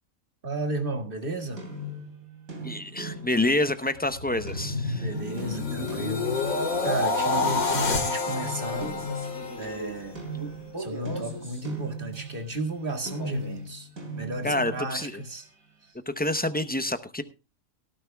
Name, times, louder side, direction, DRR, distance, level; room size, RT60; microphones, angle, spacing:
voice 1, 0.4-1.6 5.0-6.4 6.8-8.9 9.6-10.2 10.8-13.9 14.2-15.4, right 2 dB, 40° right, 6 dB, 2.1 m, -33 dB
sound 1, 1.6-6.9 7.4-12.7 13.1-15.4, equal, 80° right, 3.2 m, -39 dB
voice 2, 2.6-5.1 14.4-15.2 16.1-17.2, left 1 dB, 10° left, 11 dB, 0.4 m, -27 dB
sound 2, 4.0-10.2 10.6-10.9, left 3 dB, 85° left, 2.5 m, -29 dB
Male speech man speaking, 8.6-11.7 13.0-13.7, right 1 dB, 15° right, 3.3 m, -40 dB
18.0 x 13.0 x 2.3 m, 0.30 s
omnidirectional pair, 1.5 m